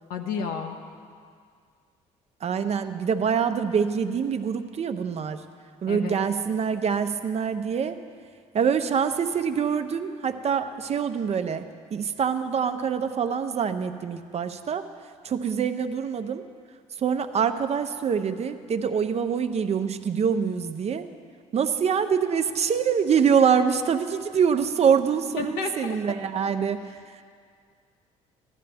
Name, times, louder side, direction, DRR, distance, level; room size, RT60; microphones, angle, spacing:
voice 1, 0.1-0.8 5.9-6.2 25.4-26.0, left 6 dB, 80° left, 3 dB, 1.1 m, -31 dB
voice 2, 2.4-5.5 5.8-8.0 8.5-14.9 15.2-16.4 17.0-21.1 21.5-27.2, right 7 dB, 45° right, 9 dB, 0.7 m, -25 dB
14.5 x 11.5 x 3.4 m, 2.1 s
supercardioid pair, 65°, 15 cm